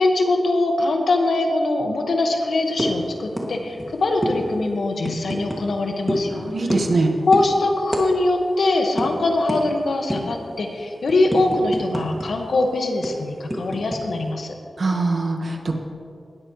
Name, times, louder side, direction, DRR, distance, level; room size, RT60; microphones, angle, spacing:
voice 1, 0.0-6.8 7.3-14.5, left 2 dB, 85° left, 2 dB, 1.6 m, -22 dB
sound 1, 2.8-3.0 3.4-3.5 3.8-3.9 4.2-4.4 5.0-5.6 6.1-6.3 6.7-7.0 7.3-7.5 7.9-8.1 8.3-8.5 9.0-9.1 9.5-9.6 10.1-10.4 10.8-12.3 12.5-12.6 13.0-14.0, equal, 5° right, 2.3 m, -26 dB
voice 2, 6.3-7.1 14.8-15.8, right 3 dB, 60° right, 3 dB, 1.6 m, -22 dB
19.5 x 13.0 x 3.2 m, 2.3 s
wide cardioid pair, 110°, 0 cm